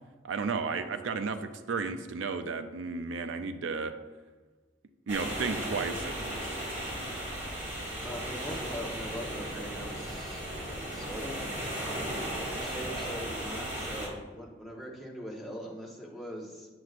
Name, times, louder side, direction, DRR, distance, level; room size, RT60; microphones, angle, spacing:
voice 1, 0.2-3.9 5.1-6.6, right 4 dB, 85° right, 9 dB, 0.4 m, -33 dB
sound 1, 5.1-14.1, right 1 dB, 35° right, 1.9 m, -36 dB
voice 2, 8.0-10.4 10.9-11.5 12.5-16.7, equal, ahead, -3 dB, 1.1 m, -41 dB
7.7 x 7.2 x 2.5 m, 1.3 s
head